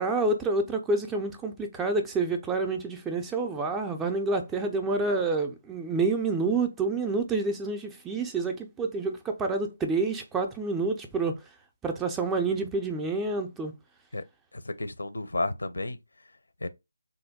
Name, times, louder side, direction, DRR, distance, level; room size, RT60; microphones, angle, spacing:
voice 1, 0.0-11.3 11.8-13.7, right 3 dB, 10° right, 0.4 m, -28 dB
voice 2, 14.5-16.0 16.6-16.7, left 2 dB, 75° left, 0.5 m, -32 dB
3.2 x 2.2 x 3.5 m
figure-of-eight pair, 155°, 0 cm